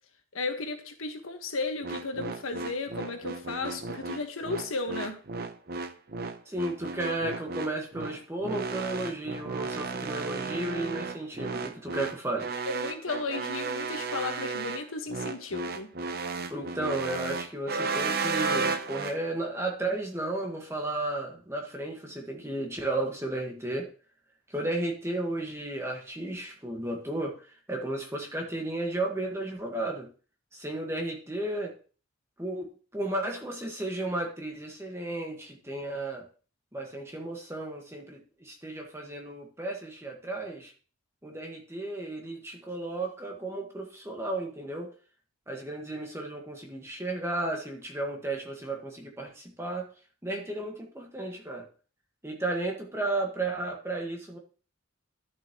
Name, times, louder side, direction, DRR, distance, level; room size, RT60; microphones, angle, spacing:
voice 1, 0.3-5.2 12.6-15.9, left 3 dB, 85° left, 5 dB, 1.4 m, -34 dB
sound 1, 1.8-19.2, right 4 dB, 45° right, 0.6 m, -34 dB
voice 2, 6.5-12.5 16.5-23.9 24.5-30.1 30.5-31.8 32.4-36.2 36.7-40.7 41.2-44.9 45.5-49.9 50.2-51.7 52.2-54.4, right 2 dB, 15° right, 1 dB, 1.5 m, -34 dB
11.5 x 6.9 x 3.0 m, 0.39 s
head